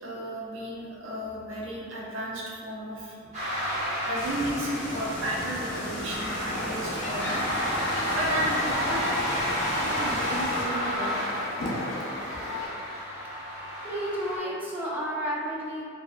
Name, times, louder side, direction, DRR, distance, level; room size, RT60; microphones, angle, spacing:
voice 1, 0.0-3.2 4.0-7.5 8.1-9.1 9.8-11.4, right 1 dB, 75° right, -4 dB, 0.4 m, -33 dB
sound 1, 3.3-14.4, equal, 40° right, 0.8 m, -31 dB
sound 2, 4.1-10.7, equal, 40° left, 0.6 m, -37 dB
sound 3, 6.1-12.7, left 1 dB, 80° left, 0.4 m, -35 dB
voice 2, 13.8-15.8, equal, 10° right, -6 dB, 0.4 m, -32 dB
2.6 x 2.1 x 2.3 m, 2.3 s
head